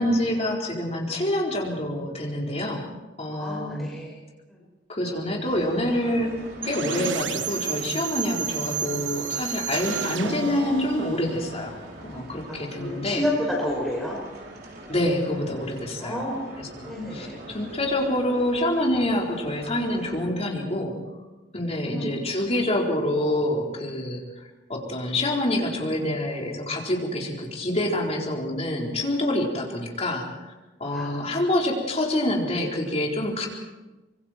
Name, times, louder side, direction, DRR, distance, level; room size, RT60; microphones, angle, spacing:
voice 1, 0.0-2.9 3.2-3.9 4.9-6.4 6.6-13.3 14.9-16.2 16.6-21.0 21.5-24.2 24.7-30.5 30.8-33.5, left 1 dB, 35° left, -1 dB, 4.3 m, -26 dB
voice 2, 3.3-4.2 4.5-4.6 12.5-14.2 16.0-16.4 16.8-17.4 21.8-22.2 30.8-31.5, left 1 dB, ahead, -4 dB, 5.3 m, -31 dB
sound 1, 5.4-20.2, right 1 dB, 60° right, 4.7 m, -44 dB
sound 2, 6.6-12.4, right 7 dB, 85° right, 1.0 m, -32 dB
25.5 x 24.0 x 4.5 m, 1.1 s
head